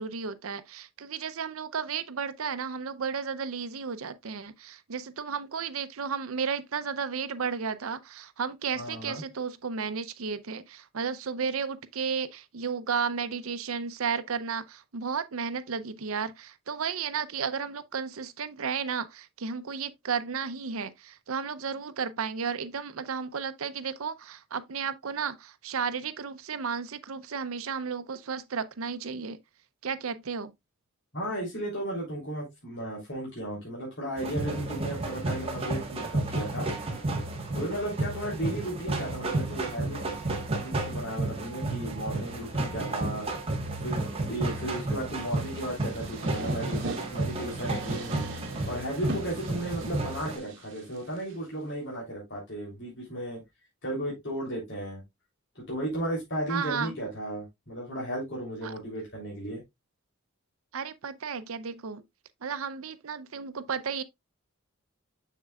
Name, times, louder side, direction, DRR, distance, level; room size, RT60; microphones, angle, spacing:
voice 1, 0.0-29.4 29.8-30.5 56.5-56.9 58.6-58.7 60.7-62.0 62.4-64.0, right 6 dB, 80° right, 0.7 m, -33 dB
voice 2, 8.7-9.2 31.1-36.7 37.5-40.0 40.6-43.3 43.8-48.2 48.7-53.4 53.8-55.0 55.5-59.6, right 1 dB, 55° left, 3.3 m, -35 dB
sound 1, 34.2-50.4, right 2 dB, 25° right, 1.4 m, -32 dB
sound 2, 45.2-51.3, right 2 dB, 60° right, 1.5 m, -40 dB
6.6 x 6.5 x 2.4 m
head